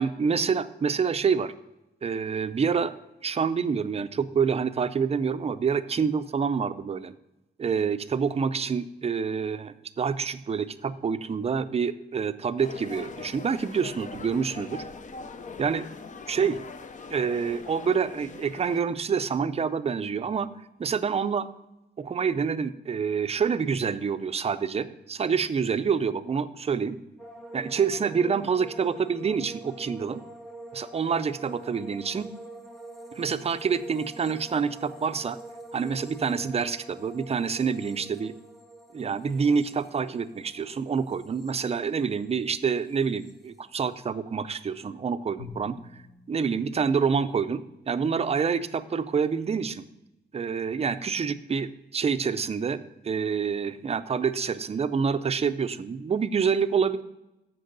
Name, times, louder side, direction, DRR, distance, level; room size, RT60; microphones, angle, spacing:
voice 1, 0.0-1.5 2.0-2.9 3.2-7.1 7.6-14.8 15.6-15.9 16.3-16.6 17.1-20.5 20.8-21.5 22.0-27.0 27.5-30.2 30.7-32.3 33.1-35.4 35.7-38.3 38.9-45.8 46.3-49.9 50.3-57.0, right 6 dB, 35° right, 12 dB, 0.4 m, -27 dB
sound 1, 12.6-18.8, left 4 dB, 45° left, 0.6 m, -41 dB
sound 2, 27.2-42.4 42.7-43.3, right 1 dB, ahead, 0.9 m, -45 dB
Drum, 45.4-47.8, left 3 dB, 75° left, 2.9 m, -47 dB
14.5 x 6.1 x 3.9 m, 0.96 s
wide cardioid pair, 175°, 18 cm